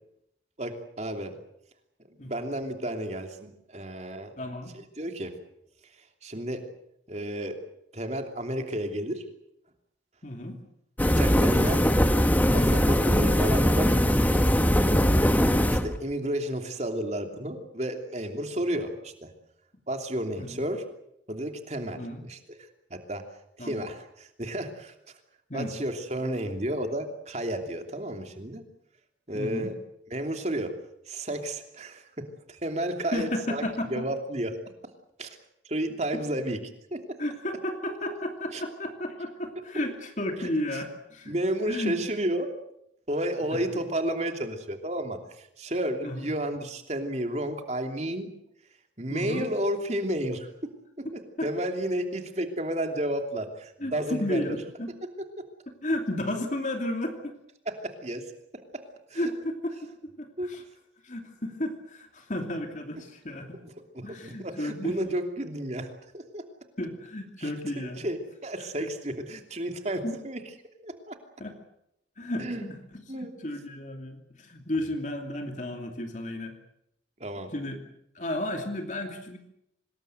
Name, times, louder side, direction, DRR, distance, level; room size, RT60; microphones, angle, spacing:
voice 1, 0.6-1.4 2.2-4.3 5.0-5.4 6.2-6.7 7.1-7.6 7.9-9.2 11.0-12.1 12.5-13.9 15.7-19.3 19.9-20.8 21.3-22.4 22.9-23.2 23.6-24.9 25.5-28.6 29.3-29.8 30.1-30.8 31.1-33.6 33.9-34.6 35.2-35.4 35.6-36.6 36.9-37.2 38.5-38.6 40.4-40.8 41.3-42.5 43.1-48.3 49.0-50.7 51.0-51.1 51.4-54.4 55.0-55.5 57.7-58.3 58.7-58.8 59.1-59.3 60.4-60.5 63.6-66.5 67.4-67.5 67.8-70.4 70.8-71.2 72.4-72.6 73.1-73.4 77.2-77.5, right 1 dB, 40° right, 5 dB, 3.0 m, -32 dB
voice 2, 4.4-4.7 10.2-10.6 20.4-20.6 22.0-22.2 23.6-23.8 25.5-25.7 29.3-29.7 33.1-34.1 37.2-41.3 41.7-42.0 43.5-43.8 46.0-46.3 49.1-49.5 51.4-51.5 53.8-54.9 55.8-57.3 59.1-60.6 61.0-63.6 64.0-65.2 66.8-68.0 68.8-68.9 70.0-70.2 71.4-71.6 72.2-76.5 77.5-77.8 78.1-79.4, left 1 dB, 45° left, 4 dB, 2.8 m, -33 dB
sound 1, 11.0-16.0, equal, 10° left, 1.5 m, -21 dB
25.5 x 20.5 x 7.9 m, 0.79 s
head